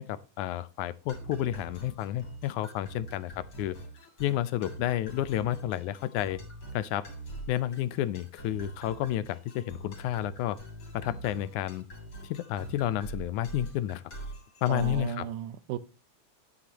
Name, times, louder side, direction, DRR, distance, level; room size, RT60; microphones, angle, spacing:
voice 1, 0.0-3.8 4.2-6.4 6.7-7.1 7.5-10.6 10.9-11.9 12.2-14.0 14.6-15.3, left 12 dB, 80° left, 2.1 m, -31 dB
sound 1, 1.1-15.2, right 2 dB, 40° left, 4.0 m, -44 dB
voice 2, 14.7-15.8, right 11 dB, 80° right, 2.2 m, -34 dB
10.5 x 9.6 x 2.9 m
omnidirectional pair, 3.6 m